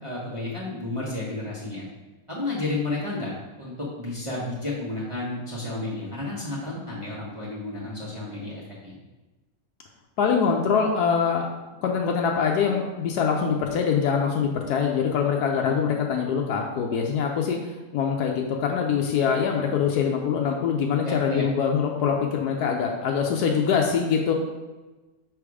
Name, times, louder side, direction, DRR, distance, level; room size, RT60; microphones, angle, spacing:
voice 1, 0.0-1.8 2.3-3.3 3.6-9.0 15.6-15.7 21.0-21.4, left 2 dB, 20° right, -7 dB, 1.1 m, -32 dB
voice 2, 10.2-11.5 11.8-17.6 17.9-24.3, left 6 dB, 85° left, 1 dB, 1.2 m, -24 dB
5.8 x 3.5 x 4.8 m, 1.2 s
omnidirectional pair, 1.7 m